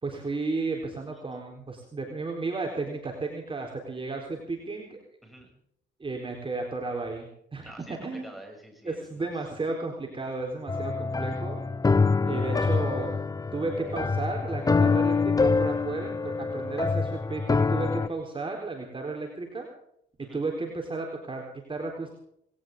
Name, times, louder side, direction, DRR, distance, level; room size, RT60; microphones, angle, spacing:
voice 1, 0.0-5.0 6.0-7.7 8.0-8.4 8.8-11.6 12.2-13.1 13.5-19.7 20.3-22.2, right 3 dB, 25° right, 1 dB, 4.0 m, -33 dB
voice 2, 5.2-5.5 7.6-9.3 20.2-20.4, right 1 dB, ahead, 2 dB, 7.1 m, -47 dB
sound 1, 10.7-18.1, left 4 dB, 20° left, 0.5 m, -25 dB
20.0 x 17.5 x 3.8 m, 0.70 s
cardioid pair, 90°, 20 cm